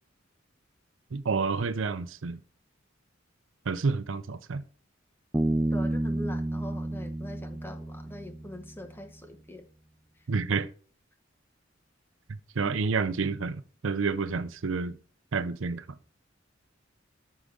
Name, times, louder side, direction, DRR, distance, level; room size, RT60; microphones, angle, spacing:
voice 1, 1.1-2.4 3.7-4.6 10.3-10.7 12.3-15.0 15.3-15.9, right 4 dB, 75° right, 0.6 m, -29 dB
Bass guitar, 5.3-8.8, right 1 dB, 10° right, 0.3 m, -30 dB
voice 2, 5.7-9.6 10.2-10.3, left 1 dB, 10° left, 1.0 m, -43 dB
13.5 x 4.8 x 3.8 m
head